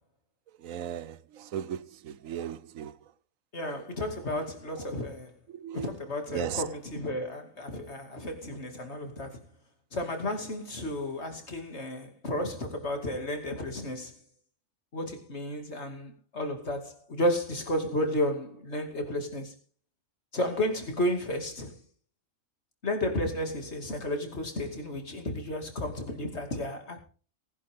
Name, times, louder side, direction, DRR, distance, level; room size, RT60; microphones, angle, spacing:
voice 1, 0.6-2.9 3.6-3.8 5.5-5.9 6.3-6.7 8.8-8.9, right 9 dB, 80° right, 1.2 m, -37 dB
voice 2, 3.5-5.3 5.7-9.4 9.9-14.1 14.9-19.5 20.3-21.7 22.8-27.0, left 1 dB, 55° left, 2.8 m, -32 dB
19.0 x 11.0 x 3.7 m
omnidirectional pair, 1.4 m